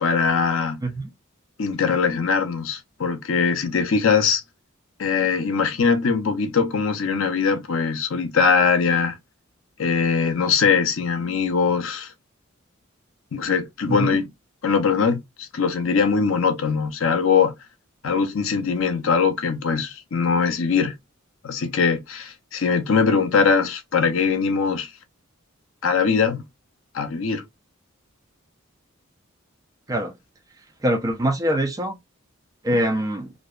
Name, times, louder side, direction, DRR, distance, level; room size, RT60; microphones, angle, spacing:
voice 1, 0.0-0.8 1.6-4.4 5.0-9.1 9.8-12.1 13.3-14.3 14.6-17.5 18.0-20.9 21.4-24.9 25.8-26.4 26.9-27.4, left 5 dB, 70° left, 0.5 m, -21 dB
voice 2, 30.8-32.0 32.6-33.3, right 1 dB, 15° right, 0.4 m, -23 dB
2.5 x 2.2 x 2.3 m
head